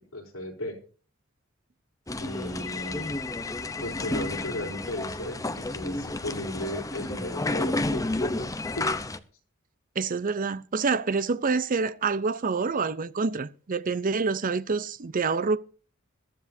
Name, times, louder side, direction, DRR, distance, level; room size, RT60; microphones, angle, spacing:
voice 1, 0.1-0.8 2.2-3.1 3.8-8.9, left 1 dB, 70° left, 3.8 m, -35 dB
sound 1, 2.1-9.2, left 2 dB, 15° left, 0.7 m, -31 dB
voice 2, 10.0-15.6, right 4 dB, 40° right, 0.6 m, -27 dB
21.5 x 13.0 x 2.7 m
head